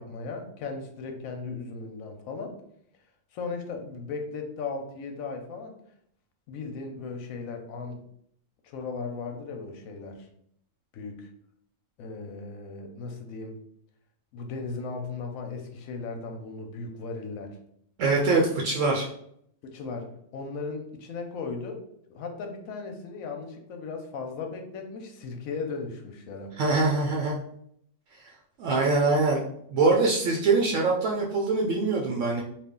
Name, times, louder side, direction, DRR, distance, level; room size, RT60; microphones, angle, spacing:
voice 1, 0.0-2.6 3.3-5.8 6.5-8.0 8.6-10.3 10.9-11.3 12.0-13.6 14.3-17.5 19.6-21.8 22.1-26.5, left 4 dB, 80° left, 4 dB, 1.1 m, -37 dB
voice 2, 18.0-19.1 26.6-27.4 28.2-28.3 28.6-29.4 29.7-32.4, right 3 dB, 70° right, -1 dB, 0.9 m, -23 dB
3.3 x 2.4 x 3.6 m, 0.69 s
omnidirectional pair, 1.4 m